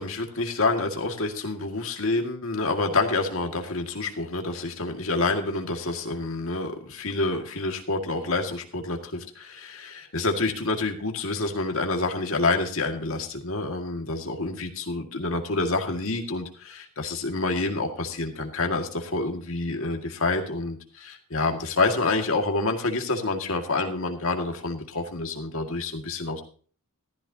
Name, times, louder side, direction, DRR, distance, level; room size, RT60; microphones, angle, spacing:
voice 1, 0.0-26.4, left 3 dB, 65° left, 3 dB, 2.0 m, -28 dB
15.0 x 14.0 x 2.8 m, 0.42 s
head